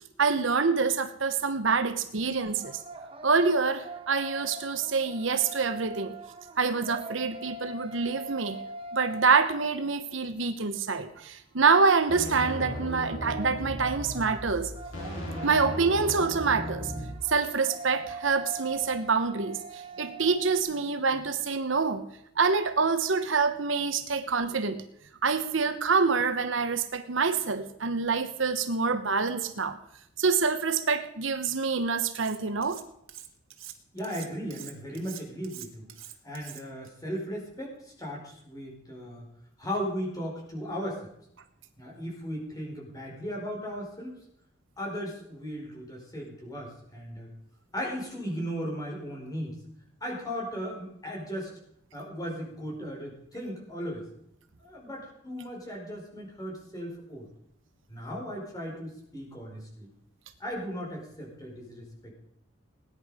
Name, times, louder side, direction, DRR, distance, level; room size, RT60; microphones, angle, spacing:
voice 1, 0.2-2.8 3.2-6.1 6.6-8.6 8.9-14.7 15.4-16.9 17.3-22.0 22.4-24.8 25.2-29.8 30.2-32.8, right 4 dB, 65° right, 9 dB, 1.0 m, -26 dB
sound 1, 2.4-10.2 12.8-20.6, right 3 dB, 30° right, 1.3 m, -43 dB
sound 2, 12.1-17.1, equal, 75° left, 4.6 m, -36 dB
Cutlery silverware, 32.1-32.8 33.1-36.9, right 12 dB, 85° right, 1.6 m, -45 dB
voice 2, 33.9-35.9 36.2-39.2 39.6-41.1 41.8-44.2 44.8-47.3 47.7-49.6 50.0-51.5 51.9-54.1 54.6-57.3 57.9-59.9 60.4-62.1, equal, 20° left, -2 dB, 4.9 m, -36 dB
18.5 x 10.0 x 5.0 m, 0.74 s
head